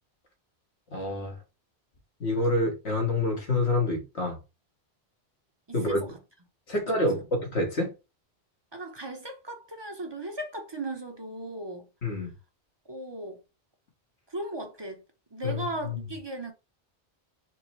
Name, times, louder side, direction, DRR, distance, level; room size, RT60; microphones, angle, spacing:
voice 1, 0.9-1.3 2.2-4.4 5.7-6.0 6.7-7.9 12.0-12.3 15.4-16.0, left 2 dB, 85° left, 1.7 m, -27 dB
voice 2, 5.7-6.1 6.7-7.2 8.7-11.9 12.9-13.4 14.3-15.0 15.3-16.5, right 1 dB, 25° right, 0.7 m, -37 dB
4.6 x 2.1 x 4.4 m
omnidirectional pair, 1.1 m